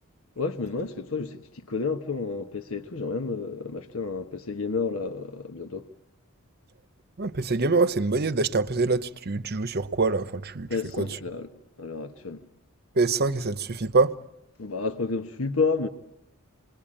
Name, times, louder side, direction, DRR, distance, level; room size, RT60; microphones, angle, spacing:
voice 1, 0.4-5.9 10.7-11.5 11.8-12.4 14.6-15.9, left 4 dB, 75° left, 1.2 m, -30 dB
voice 2, 7.2-11.1 12.9-14.1, right 3 dB, 50° right, 0.9 m, -25 dB
27.5 x 21.0 x 8.8 m
head